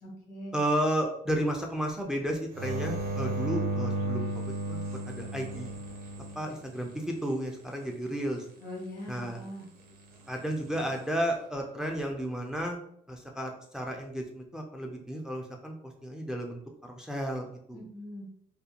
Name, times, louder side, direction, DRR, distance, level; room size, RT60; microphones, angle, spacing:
voice 1, 0.0-0.6 8.6-9.6 17.7-18.2, equal, 85° left, -1 dB, 1.1 m, -42 dB
voice 2, 0.5-4.8 5.1-5.7 6.4-8.4 9.1-9.4 10.3-12.8 13.1-17.8, right 1 dB, 5° right, 2 dB, 0.3 m, -33 dB
sound 1, 2.5-7.2 10.4-11.0, right 2 dB, 65° right, 0.6 m, -34 dB
2.4 x 2.1 x 2.8 m, 0.69 s
cardioid pair, 110°, 17 cm